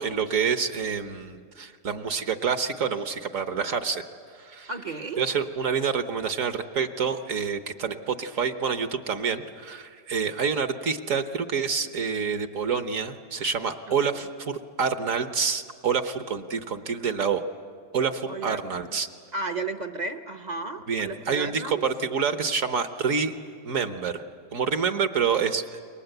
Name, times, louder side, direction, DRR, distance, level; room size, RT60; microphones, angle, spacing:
voice 1, 0.0-4.0 4.3-4.7 5.2-17.4 17.9-19.1 20.9-23.3 23.6-24.2 24.5-25.8, right 6 dB, 55° right, 8 dB, 1.4 m, -27 dB
voice 2, 4.7-5.2 18.3-18.6 18.9-19.0 19.3-21.8, right 3 dB, 35° right, 7 dB, 0.8 m, -33 dB
29.0 x 23.0 x 8.0 m, 2.1 s
omnidirectional pair, 1.7 m